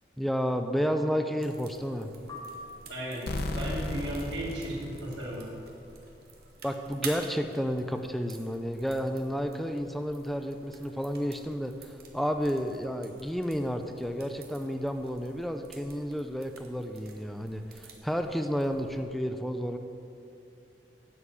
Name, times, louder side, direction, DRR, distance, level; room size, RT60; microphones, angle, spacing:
voice 1, 0.2-2.1 6.6-19.8, equal, ahead, 6 dB, 0.4 m, -31 dB
sound 1, 1.4-19.0, right 5 dB, 60° right, 1.3 m, -50 dB
sound 2, 2.3-3.6, left 2 dB, 20° left, 0.9 m, -45 dB
voice 2, 2.9-3.3 3.6-5.5, right 1 dB, 85° right, -5 dB, 2.8 m, -35 dB
sound 3, 3.3-6.0, left 1 dB, 60° left, 0.7 m, -35 dB
9.9 x 5.0 x 8.1 m, 2.6 s
head